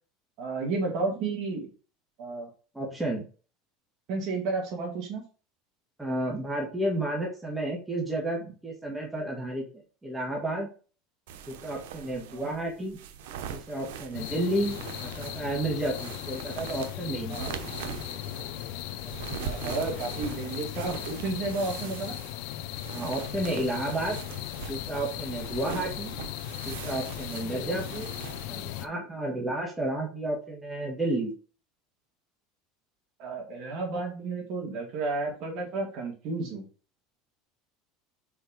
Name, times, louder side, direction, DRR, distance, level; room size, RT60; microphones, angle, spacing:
voice 1, 0.4-1.7 2.2-2.5 4.1-5.2 12.3-12.5 17.3-17.5 19.4-22.2 33.2-36.7, right 3 dB, 50° right, 1 dB, 2.4 m, -32 dB
voice 2, 2.7-3.3 6.0-10.7 11.5-13.0 13.5-14.8 15.0-17.6 22.9-24.2 24.7-26.1 26.7-28.1 28.5-31.3, right 1 dB, 10° right, -1 dB, 1.7 m, -31 dB
sound 1, 11.3-28.5, right 8 dB, 90° right, 0.8 m, -42 dB
sound 2, 14.1-28.9, left 13 dB, 70° left, 0.6 m, -37 dB
4.8 x 4.4 x 5.2 m, 0.37 s
supercardioid pair, 145°, 0 cm